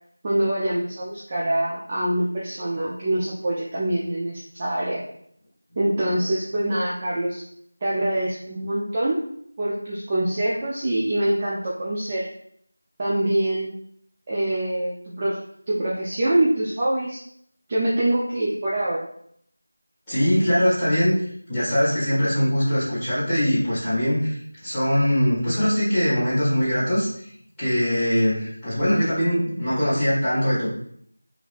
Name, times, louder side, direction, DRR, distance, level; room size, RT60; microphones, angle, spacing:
voice 1, 0.2-5.0 5.8-7.4 7.8-9.2 9.6-12.3 13.0-13.7 14.3-15.4 15.7-17.2 17.7-19.1, right 1 dB, 20° right, -6 dB, 0.3 m, -24 dB
voice 2, 20.1-21.1 21.5-27.1 27.6-30.7, equal, 5° left, -19 dB, 1.4 m, -22 dB
2.9 x 2.8 x 2.4 m, 0.67 s
figure-of-eight pair, 175°, 0 cm